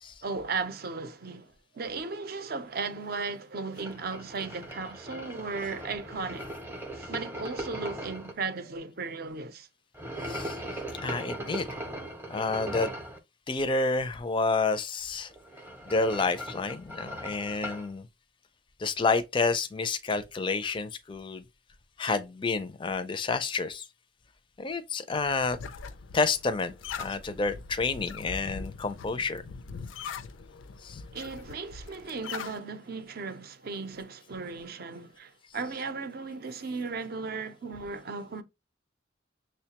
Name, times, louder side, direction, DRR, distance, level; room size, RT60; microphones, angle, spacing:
voice 1, 0.2-6.5 6.9-9.7 31.1-38.4, right 4 dB, 50° right, 0.5 m, -36 dB
sound 1, 3.8-8.3 9.9-13.2 15.3-17.9, right 1 dB, 10° right, 0.6 m, -39 dB
voice 2, 10.2-10.6 11.0-11.7 12.3-12.9 13.5-15.3 15.9-18.1 18.8-21.4 22.0-23.9 24.6-25.6 26.1-29.4 30.8-31.0 35.7-35.8, left 3 dB, 25° left, 0.4 m, -29 dB
sound 2, 25.1-32.6, left 5 dB, 85° left, 0.4 m, -42 dB
6.2 x 2.2 x 2.8 m
head